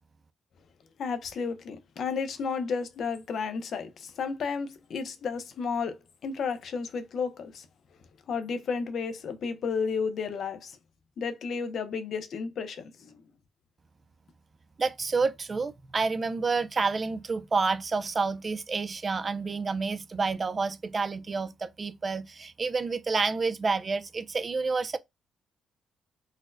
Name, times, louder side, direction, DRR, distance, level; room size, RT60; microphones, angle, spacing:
voice 1, 1.0-7.7 8.3-10.8 11.2-13.1, left 5 dB, 60° left, 0.6 m, -32 dB
voice 2, 14.8-25.0, right 4 dB, 35° right, 0.4 m, -29 dB
3.9 x 2.1 x 2.5 m
cardioid pair, 90°, 0 cm